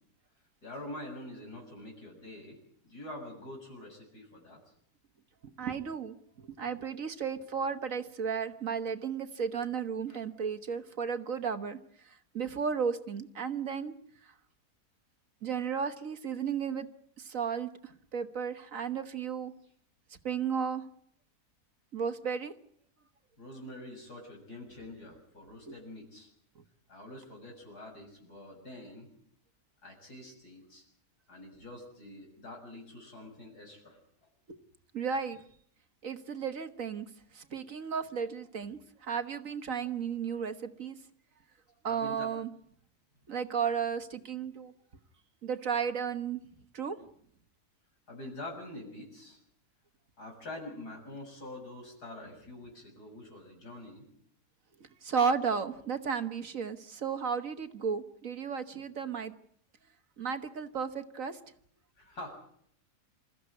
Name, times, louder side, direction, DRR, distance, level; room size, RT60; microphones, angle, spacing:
voice 1, 0.6-2.6 2.8-4.6 10.1-10.2 23.4-26.3 26.9-29.1 29.8-30.8 31.3-34.0 41.9-42.3 48.1-49.4 50.2-54.0 58.7-58.8 62.0-62.4, left 1 dB, 80° left, 2 dB, 7.4 m, -45 dB
voice 2, 5.6-11.8 12.3-13.9 15.4-16.9 17.2-19.5 20.2-20.8 21.9-22.5 25.7-25.8 34.5-34.6 34.9-35.4 36.0-37.1 37.3-41.0 41.8-42.5 43.3-44.7 45.4-46.4 46.7-47.0 55.0-59.3 60.2-61.4, right 6 dB, 60° right, 9 dB, 1.8 m, -34 dB
27.5 x 14.5 x 9.7 m, 0.67 s
omnidirectional pair, 1.7 m